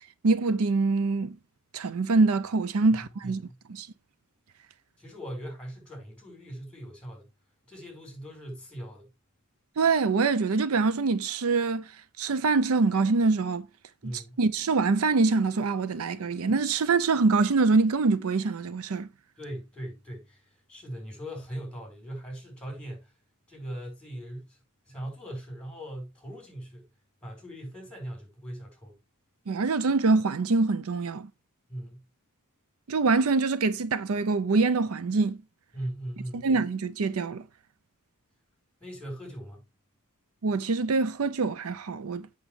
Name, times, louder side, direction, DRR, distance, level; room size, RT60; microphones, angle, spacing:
voice 1, 0.2-1.4 1.7-3.4 3.7-3.9 9.8-11.9 12.2-13.7 14.0-19.1 29.5-31.3 32.9-35.4 36.4-37.4 40.4-42.3, right 3 dB, 70° right, 0.5 m, -24 dB
voice 2, 3.2-3.6 5.0-7.3 7.7-9.1 14.0-14.4 19.4-23.1 23.5-24.6 24.9-26.9 27.2-28.9 31.7-32.1 35.7-36.5 38.8-39.6, equal, 5° left, 4.7 m, -40 dB
8.1 x 6.5 x 3.3 m
head